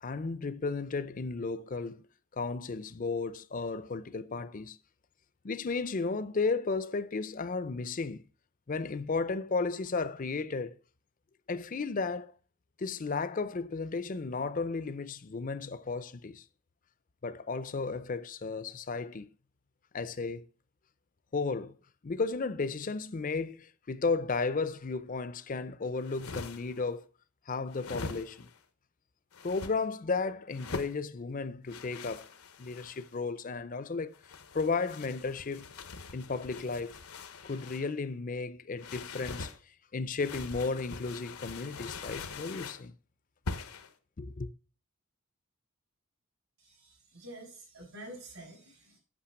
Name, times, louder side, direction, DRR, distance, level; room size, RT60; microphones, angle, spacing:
voice 1, 0.0-2.1 2.3-4.8 5.4-8.2 8.7-10.8 11.5-12.3 12.8-16.4 17.2-19.3 19.9-20.5 21.3-21.7 22.0-27.1 27.5-28.5 29.4-32.3 32.6-34.1 34.5-35.7 36.1-37.0 37.4-39.5 39.9-42.9 44.2-44.5, left 4 dB, 40° left, 0.5 m, -34 dB
sound 1, 25.9-26.8 27.7-28.6 29.3-29.7 30.5-31.0 31.7-33.1 34.1-37.9 38.8-39.6 40.2-42.8 43.5-43.9, left 4 dB, 85° left, 1.0 m, -43 dB
voice 2, 46.6-49.0, right 1 dB, 80° right, 5.0 m, -48 dB
8.7 x 5.7 x 5.8 m
head